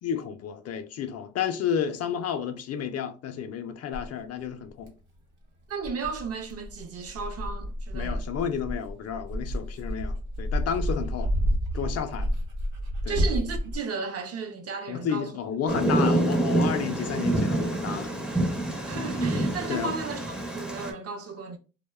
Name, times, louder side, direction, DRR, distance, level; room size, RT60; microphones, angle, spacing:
voice 1, 0.0-4.9 7.9-11.3 11.7-12.3 13.0-13.2 14.9-18.1 19.7-19.9, left 8 dB, 55° left, 0.4 m, -31 dB
Dog, 3.9-4.1 4.8-4.9 5.8-13.8, equal, 85° right, 0.8 m, -30 dB
voice 2, 5.7-8.3 13.1-15.3 18.8-21.6, right 4 dB, 55° right, 0.5 m, -34 dB
Thunder, 15.7-20.9, right 2 dB, 5° right, 0.4 m, -26 dB
2.7 x 2.1 x 2.3 m
cardioid pair, 90°, 30 cm